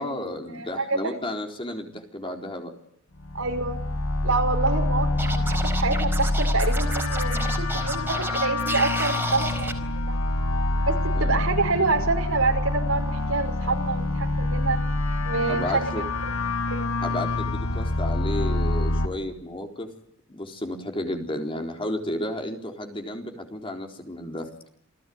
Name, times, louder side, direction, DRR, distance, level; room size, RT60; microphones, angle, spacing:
voice 1, 0.0-2.7 11.1-11.4 15.5-16.0 17.0-19.9 20.3-24.5, left 1 dB, 25° left, 3 dB, 4.0 m, -32 dB
voice 2, 0.5-0.9 3.3-3.8 4.2-10.2 10.9-14.8 15.2-15.9 16.2-16.3 16.7-16.9, right 3 dB, 80° right, 4 dB, 5.5 m, -27 dB
sound 1, 3.2-19.1, left 2 dB, 80° left, 2.5 m, -26 dB
Scratching (performance technique), 5.2-9.7, right 2 dB, 10° right, 4.4 m, -32 dB
28.5 x 18.0 x 9.5 m, 0.68 s
head